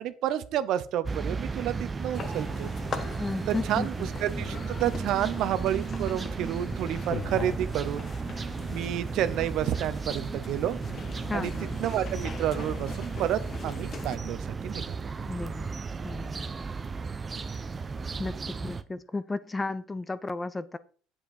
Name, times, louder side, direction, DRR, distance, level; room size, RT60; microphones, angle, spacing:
voice 1, 0.0-2.7 3.5-3.9 4.2-8.1 8.7-10.8 11.3-11.5 11.8-14.4 14.6-15.1, right 11 dB, 60° right, 13 dB, 0.8 m, -30 dB
sound 1, 1.0-18.8, right 4 dB, 25° right, 0.8 m, -34 dB
sound 2, 2.1-14.2, left 6 dB, 40° left, 1.1 m, -41 dB
voice 2, 3.2-4.1 11.3-11.8 15.3-15.7 16.0-16.5 18.2-20.8, left 3 dB, 15° left, 15 dB, 0.7 m, -34 dB
7.9 x 7.3 x 4.4 m, 0.42 s
supercardioid pair, 95°, 0 cm